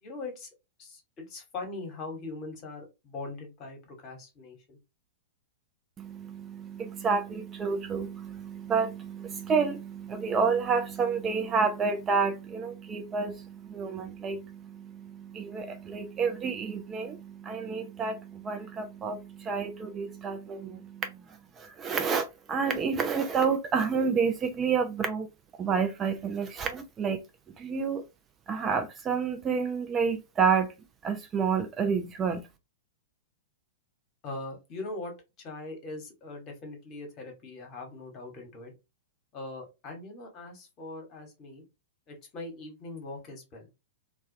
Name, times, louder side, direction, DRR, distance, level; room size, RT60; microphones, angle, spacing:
voice 1, 0.0-0.5 0.8-4.8 34.2-38.7 39.3-41.6 42.1-43.7, left 2 dB, 35° left, 1.1 m, -41 dB
voice 2, 6.0-21.2 21.6-25.3 25.6-27.2 27.6-28.0 28.5-30.7 31.0-32.4, right 5 dB, 25° right, 0.3 m, -29 dB
2.2 x 2.1 x 2.6 m
figure-of-eight pair, 105°, 0 cm